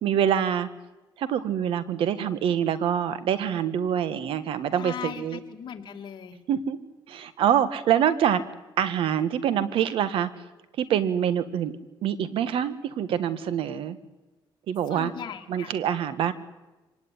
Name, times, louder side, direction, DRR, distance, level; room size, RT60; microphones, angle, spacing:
voice 1, 0.0-0.7 1.2-5.4 6.5-6.8 7.1-8.4 8.8-10.3 10.8-14.0 14.7-15.1 15.5-16.3, right 9 dB, 80° right, 13 dB, 1.7 m, -25 dB
voice 2, 4.8-6.4 14.9-15.7, left 8 dB, 55° left, 3 dB, 2.8 m, -38 dB
25.5 x 18.5 x 9.8 m, 1.1 s
cardioid pair, 115°, 9 cm